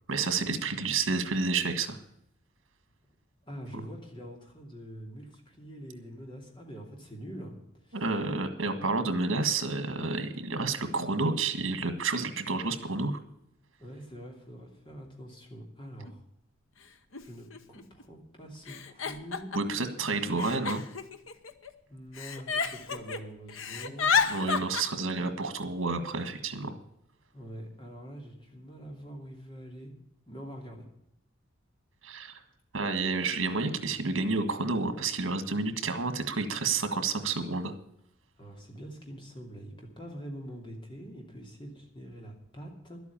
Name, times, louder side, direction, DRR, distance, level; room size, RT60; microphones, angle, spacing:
voice 1, 0.1-2.0 7.9-13.2 19.5-20.8 24.3-26.8 32.0-32.4 32.7-37.7, right 3 dB, 80° right, 9 dB, 1.6 m, -30 dB
voice 2, 3.5-7.6 7.8-8.0 13.8-16.2 17.2-19.5 21.9-24.2 27.3-29.9 30.3-30.8 38.4-43.0, equal, 25° left, 1 dB, 2.8 m, -44 dB
Giggle, 16.1-16.2 17.1-17.2 17.5-18.0 18.7-19.8 20.4-21.7 22.1-23.2 23.5-24.8, left 5 dB, 85° left, 1.0 m, -30 dB
12.0 x 8.3 x 8.6 m, 0.76 s
head